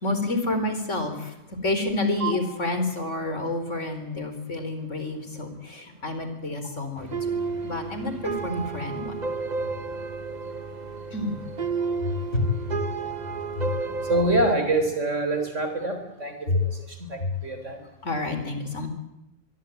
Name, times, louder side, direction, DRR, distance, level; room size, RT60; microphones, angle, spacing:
voice 1, 0.0-1.3 1.6-7.3 7.6-9.1 11.1-11.3 12.0-12.5 13.6-13.7 16.5-16.6 17.2-17.3 18.0-18.9, left 2 dB, 75° left, 8 dB, 4.5 m, -28 dB
sound 1, 7.0-14.5, right 4 dB, 35° right, 1.1 m, -32 dB
voice 2, 14.0-16.4 16.9-17.8, right 2 dB, 75° right, 6 dB, 4.2 m, -25 dB
25.0 x 22.5 x 9.2 m, 0.87 s
omnidirectional pair, 1.3 m